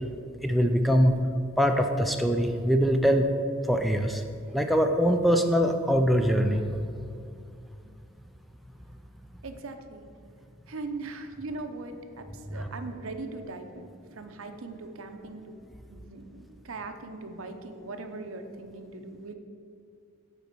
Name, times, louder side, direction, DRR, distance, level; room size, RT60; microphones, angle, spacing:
voice 1, 0.4-1.1 1.6-3.3 3.7-4.2 4.5-6.6 12.5-12.7, equal, ahead, 4 dB, 0.4 m, -23 dB
voice 2, 9.4-10.1 10.7-15.5 15.9-19.3, right 3 dB, 70° right, 7 dB, 0.7 m, -40 dB
9.0 x 4.1 x 6.8 m, 2.5 s
head